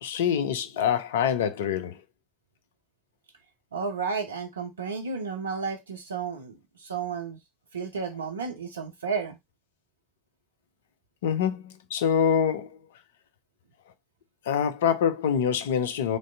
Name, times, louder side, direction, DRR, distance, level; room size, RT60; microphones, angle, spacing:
voice 1, 0.0-2.0 11.2-12.8 14.5-16.2, left 8 dB, 70° left, 0.4 m, -25 dB
voice 2, 3.7-7.4 7.7-9.4, right 5 dB, 75° right, 0.4 m, -32 dB
3.1 x 2.5 x 2.4 m
figure-of-eight pair, 70°, 0 cm